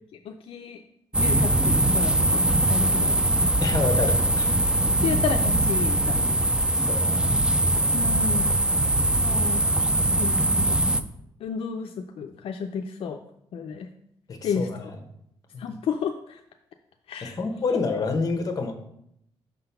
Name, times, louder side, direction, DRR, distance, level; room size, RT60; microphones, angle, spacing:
voice 1, 0.3-0.8 1.2-2.4 2.7-3.1 5.0-6.3 7.9-8.6 9.2-9.6 10.2-10.8 11.4-13.2 13.5-13.9 14.4-14.7 15.6-16.4 17.1-17.3, left 6 dB, 70° left, 5 dB, 0.4 m, -31 dB
sound 1, 1.1-11.0, right 1 dB, 10° right, 0.3 m, -22 dB
voice 2, 3.6-4.5 6.8-7.3 14.3-15.0 15.5-15.7 17.2-18.7, left 4 dB, 35° left, 5 dB, 1.0 m, -28 dB
5.9 x 3.9 x 5.6 m, 0.74 s
cardioid pair, 130°, 10 cm